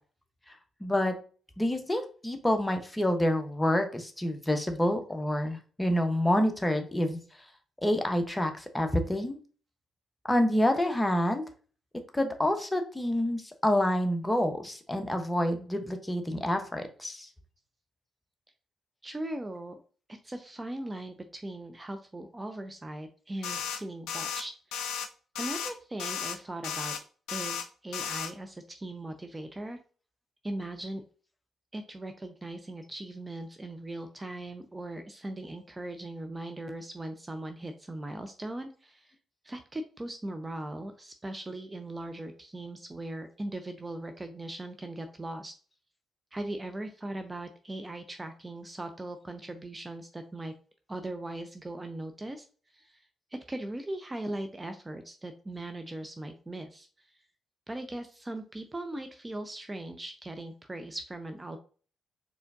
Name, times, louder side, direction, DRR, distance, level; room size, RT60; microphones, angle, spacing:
voice 1, 0.8-1.2 1.6-7.2 7.8-9.4 10.3-11.4 12.1-17.3, left 1 dB, 15° left, 6 dB, 1.0 m, -27 dB
voice 2, 19.0-19.8 20.2-24.9 25.3-26.9 27.3-29.8 30.4-31.0 31.7-39.1 39.4-45.5 46.3-50.5 50.9-52.5 52.7-57.1 57.7-61.6, right 1 dB, 20° right, 7 dB, 0.5 m, -39 dB
sound 1, 23.4-23.8 24.1-24.4 24.7-25.1 25.3-25.7 26.0-26.4 26.6-27.0 27.3-27.6 27.9-28.3, left 8 dB, 80° left, 0.5 m, -34 dB
4.3 x 3.4 x 2.6 m, 0.40 s
hypercardioid pair, 45°, 0 cm